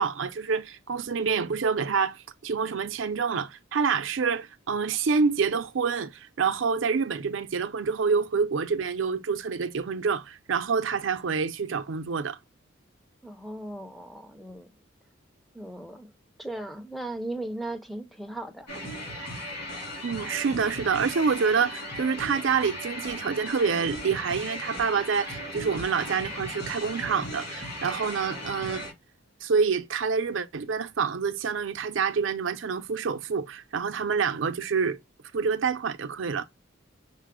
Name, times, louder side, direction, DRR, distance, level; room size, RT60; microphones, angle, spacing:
voice 1, 0.0-12.4 20.0-28.8 29.4-35.0 35.3-36.5, right 5 dB, 75° right, 0.5 m, -27 dB
voice 2, 13.2-14.8 15.5-16.1 16.4-18.7, right 1 dB, ahead, 0.5 m, -37 dB
sound 1, 18.7-28.9, left 1 dB, 55° left, 2.5 m, -37 dB
5.6 x 2.0 x 3.6 m
head